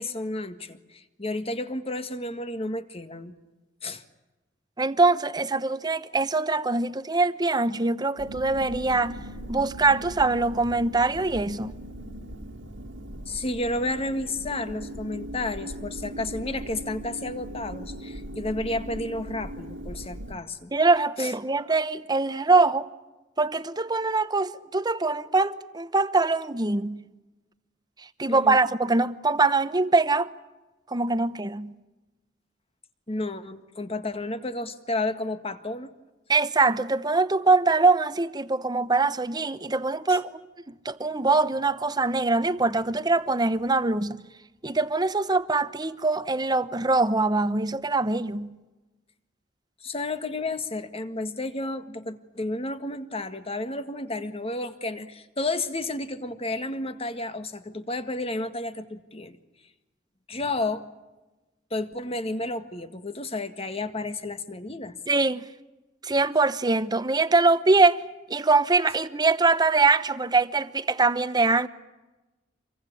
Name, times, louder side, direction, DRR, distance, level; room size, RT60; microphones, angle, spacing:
voice 1, 0.0-3.3 3.8-4.0 13.3-20.7 21.2-21.3 28.3-28.6 33.1-35.9 40.1-40.2 49.8-59.4 60.3-60.8 61.7-65.0, left 2 dB, 30° left, 1.8 m, -31 dB
voice 2, 4.8-9.2 9.5-11.7 20.7-22.9 23.4-27.0 28.2-30.3 30.9-31.7 36.3-40.3 40.7-44.2 44.6-48.5 65.1-65.4 66.0-68.0 68.3-71.7, right 3 dB, 20° right, 1.0 m, -23 dB
sound 1, 8.2-20.4, equal, 85° right, 2.3 m, -39 dB
26.5 x 23.5 x 8.6 m
head